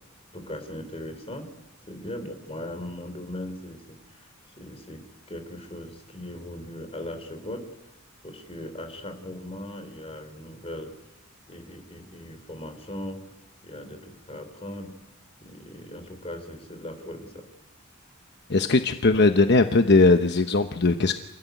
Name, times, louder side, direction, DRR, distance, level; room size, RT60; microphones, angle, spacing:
voice 1, 0.3-1.5 1.9-4.3 4.6-7.7 8.2-10.9 11.5-13.2 13.6-14.9 15.4-17.4, left 1 dB, 30° left, 7 dB, 3.7 m, -39 dB
voice 2, 18.5-21.2, left 3 dB, 55° left, 8 dB, 1.0 m, -19 dB
28.5 x 16.0 x 9.4 m, 0.99 s
head